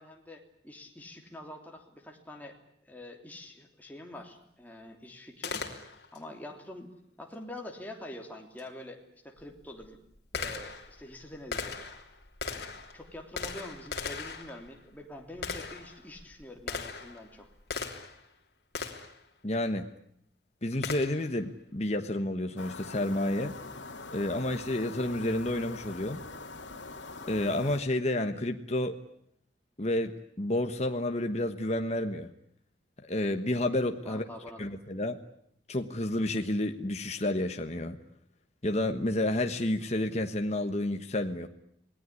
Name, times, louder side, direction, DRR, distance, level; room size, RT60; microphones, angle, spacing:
voice 1, 0.0-5.6 6.1-6.9 7.2-10.0 10.3-11.9 12.5-17.5 34.0-34.7, left 1 dB, 10° left, 1 dB, 3.2 m, -46 dB
Gunshot gunfire, 5.4-6.2 8.6-8.7 9.4-18.3 18.7-19.2 20.8-21.4, left 5 dB, 60° left, 3.2 m, -39 dB
voice 2, 19.4-19.9 20.6-23.5 24.1-26.2 27.3-28.9 29.8-32.3 33.0-34.2 34.6-35.2 35.7-38.0 38.6-41.5, left 1 dB, 35° left, 6 dB, 1.3 m, -30 dB
sound 1, 22.6-27.8, left 3 dB, 75° left, 2.5 m, -43 dB
27.5 x 19.0 x 9.9 m, 0.72 s
head